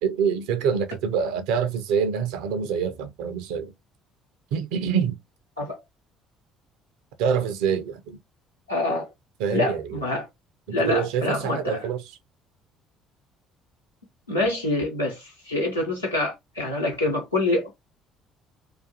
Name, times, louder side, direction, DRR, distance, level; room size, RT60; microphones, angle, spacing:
voice 1, 0.0-3.7 4.5-5.2 7.2-8.2 9.4-10.0 10.7-12.2, right 7 dB, 65° right, 0.4 m, -26 dB
voice 2, 8.7-9.1 9.5-10.3 10.7-11.8 14.3-17.7, left 2 dB, 90° left, 0.8 m, -26 dB
2.4 x 2.3 x 2.6 m
figure-of-eight pair, 50°, 0 cm